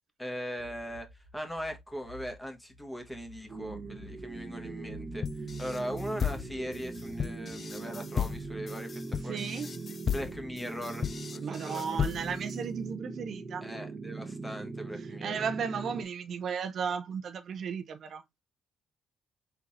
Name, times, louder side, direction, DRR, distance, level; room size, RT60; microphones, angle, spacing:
voice 1, 0.2-1.1 1.3-5.2 5.6-9.4 10.1-11.1 11.3-12.1 13.6-15.4, equal, 10° left, 1.4 m, -39 dB
sound 1, 0.6-8.1, equal, 85° left, 1.5 m, -51 dB
sound 2, 3.5-16.0, right 3 dB, 30° right, 0.8 m, -41 dB
sound 3, 5.2-12.5, left 7 dB, 45° left, 0.3 m, -35 dB
voice 2, 9.2-9.7 11.4-13.7 15.0-18.2, right 6 dB, 60° right, 0.6 m, -35 dB
4.5 x 3.8 x 2.6 m
cardioid pair, 90°, 0 cm